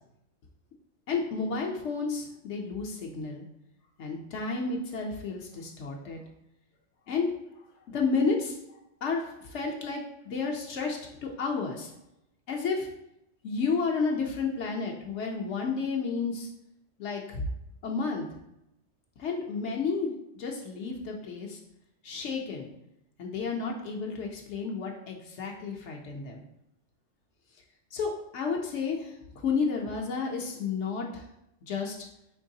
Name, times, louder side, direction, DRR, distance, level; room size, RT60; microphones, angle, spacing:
voice 1, 1.1-3.4 4.0-6.2 7.1-7.3 7.9-11.9 12.5-12.9 13.4-16.5 17.0-17.5 17.8-18.3 19.2-21.6 22.0-22.7 23.2-26.4 27.9-31.2 31.6-32.0, left 4 dB, 70° left, 0 dB, 0.9 m, -31 dB
4.4 x 3.1 x 2.7 m, 0.81 s
omnidirectional pair, 1.3 m